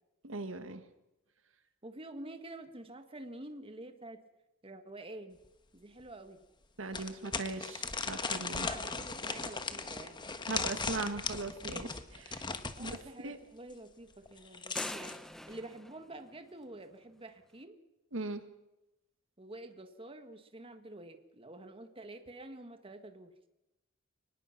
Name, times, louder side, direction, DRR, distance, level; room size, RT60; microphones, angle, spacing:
voice 1, 0.2-0.8 6.8-8.6 10.5-12.4 12.8-13.0 13.2-13.4 18.1-18.4, right 3 dB, 75° right, 9 dB, 1.7 m, -39 dB
voice 2, 1.8-4.2 4.6-5.4 5.7-6.4 8.3-10.2 12.8-15.1 15.5-17.8 19.4-23.3, right 2 dB, 30° right, 7 dB, 1.7 m, -48 dB
sound 1, 5.4-5.5 6.0-6.1 6.9-13.0 14.3-15.2, left 4 dB, 25° left, 1.3 m, -38 dB
sound 2, 14.8-16.9, equal, ahead, 0.7 m, -44 dB
24.0 x 19.5 x 5.9 m, 0.95 s
head